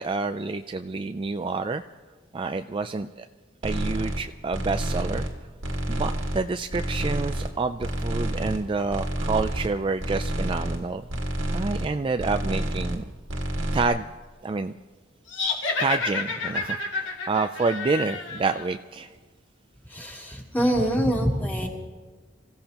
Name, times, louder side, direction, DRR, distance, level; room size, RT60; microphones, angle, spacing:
voice 1, 0.0-1.8 2.3-3.3 3.6-5.3 5.9-11.0 11.5-13.0 13.7-14.0 14.4-14.7 15.8-19.1, right 4 dB, 25° right, 8 dB, 0.4 m, -28 dB
sound 1, 3.6-4.2 4.5-5.3 5.6-6.4 6.7-7.5 7.8-8.6 8.9-9.7 10.0-10.8 11.1-11.9 12.2-13.0 13.3-13.8, right 1 dB, 80° right, 2.0 m, -29 dB
sound 2, 15.3-18.7, left 3 dB, 70° left, 2.2 m, -29 dB
voice 2, 19.9-21.7, equal, 10° left, -2 dB, 2.8 m, -25 dB
27.0 x 16.0 x 2.9 m, 1.5 s
head